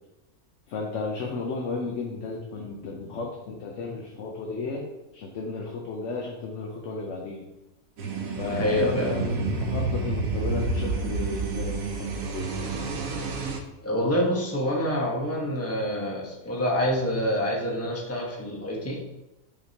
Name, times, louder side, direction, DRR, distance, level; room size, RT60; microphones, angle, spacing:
voice 1, 0.7-4.9 5.1-7.5 8.3-12.5, left 4 dB, 65° left, 0 dB, 1.1 m, -34 dB
sound 1, 8.0-13.6, right 3 dB, 85° right, 1.2 m, -29 dB
voice 2, 8.5-9.1 13.8-19.2, equal, 10° left, -2 dB, 1.1 m, -27 dB
7.1 x 4.9 x 2.8 m, 1.0 s
omnidirectional pair, 1.4 m